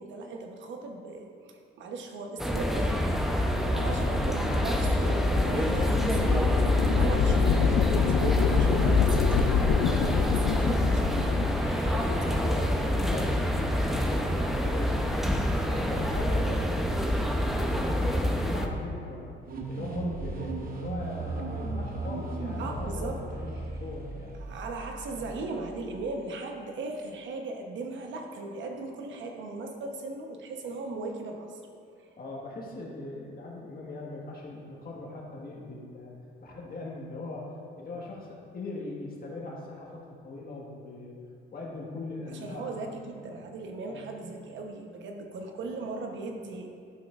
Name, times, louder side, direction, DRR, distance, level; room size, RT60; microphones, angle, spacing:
voice 1, 0.0-3.1 3.6-12.4 13.1-13.2 22.6-23.2 24.4-31.6 32.0-32.1 42.3-46.7, right 3 dB, 70° right, 3 dB, 1.0 m, -38 dB
sound 1, 2.4-18.7, left 1 dB, ahead, 0.7 m, -26 dB
sound 2, 3.6-11.6, left 7 dB, 85° left, 0.4 m, -28 dB
voice 2, 3.7-4.3 5.5-6.1 6.9-7.1 11.8-16.7 17.3-19.4 19.7-24.4 25.1-25.2 32.2-36.1 36.4-41.1 41.5-43.0 43.8-44.1, left 2 dB, 50° left, -3 dB, 1.6 m, -40 dB
sound 3, 19.4-26.1, right 2 dB, 50° right, 0.8 m, -36 dB
11.0 x 6.1 x 2.5 m, 2.4 s
cardioid pair, 90°, 20 cm